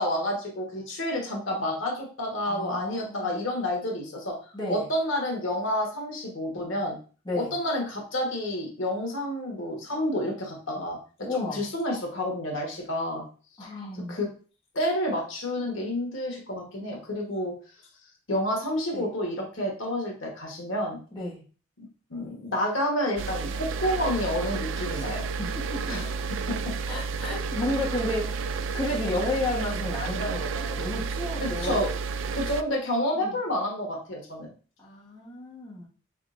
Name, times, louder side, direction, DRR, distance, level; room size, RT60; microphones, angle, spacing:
voice 1, 0.0-4.4 4.7-7.0 7.3-11.0 11.3-13.2 13.6-13.7 14.1-14.3 14.7-17.5 18.3-21.0 22.1-25.3 25.9-26.1 31.4-31.9 32.3-34.5, left 1 dB, 90° left, 0 dB, 1.2 m, -29 dB
voice 2, 2.4-3.4 4.5-4.8 7.2-7.5 11.3-11.6 13.6-14.2 18.9-19.1 21.1-21.4 24.9-25.0 25.4-26.0 26.4-26.5 26.9-28.4 28.7-31.9 33.1-33.3 34.8-35.9, left 2 dB, 20° left, -5 dB, 1.1 m, -32 dB
sound 1, 23.2-32.6, right 5 dB, 80° right, 0.3 m, -31 dB
4.0 x 3.6 x 2.5 m, 0.38 s
head